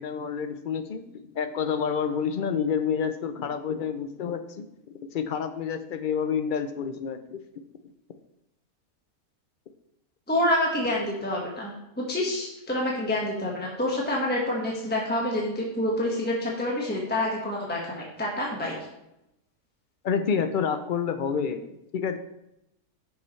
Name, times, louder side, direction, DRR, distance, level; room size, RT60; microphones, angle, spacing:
voice 1, 0.0-7.4 20.0-21.6 21.9-22.2, left 7 dB, 85° left, 9 dB, 0.4 m, -29 dB
voice 2, 10.3-11.7 12.0-18.8, left 1 dB, 5° left, -3 dB, 1.4 m, -27 dB
10.5 x 7.2 x 3.2 m, 0.86 s
omnidirectional pair, 1.6 m